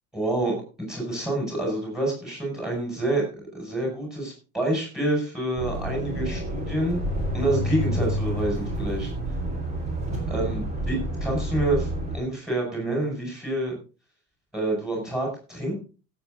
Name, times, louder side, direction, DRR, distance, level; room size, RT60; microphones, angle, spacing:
voice 1, 0.1-7.0 7.3-9.1 10.3-11.9 12.1-13.8 14.5-15.7, right 1 dB, ahead, 0 dB, 5.5 m, -27 dB
sound 1, 5.6-12.2, right 1 dB, 20° right, 3.5 m, -29 dB
16.5 x 8.1 x 3.8 m, 0.33 s
cardioid pair, 175°, 36 cm